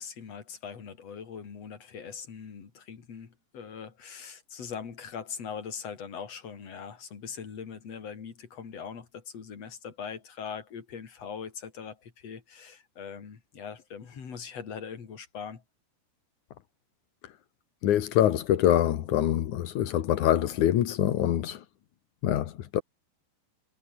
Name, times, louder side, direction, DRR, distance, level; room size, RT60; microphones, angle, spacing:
voice 1, 0.0-15.6, left 6 dB, 40° left, 3.6 m, -41 dB
voice 2, 17.8-21.6 22.2-22.8, left 11 dB, 65° left, 2.0 m, -25 dB
omnidirectional pair, 5.3 m